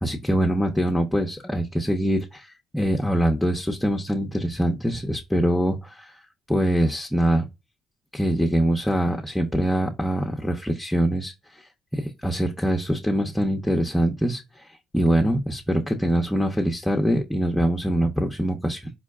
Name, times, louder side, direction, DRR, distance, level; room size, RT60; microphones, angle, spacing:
voice 1, 0.0-6.1 6.5-7.4 8.1-11.6 11.9-14.7 14.9-18.9, right 1 dB, 5° left, 0.8 m, -24 dB
4.6 x 2.1 x 3.6 m
supercardioid pair, 65°, 0 cm